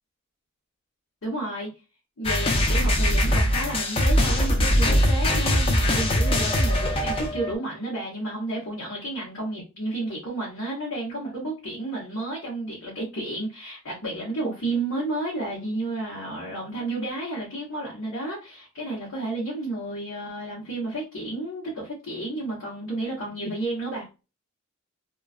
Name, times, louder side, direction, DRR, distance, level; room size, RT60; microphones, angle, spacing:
voice 1, 1.2-1.7 2.2-24.0, right 2 dB, 80° left, 1.0 m, -31 dB
sound 1, 2.2-7.5, left 1 dB, 25° left, 0.4 m, -22 dB
2.4 x 2.2 x 2.4 m
head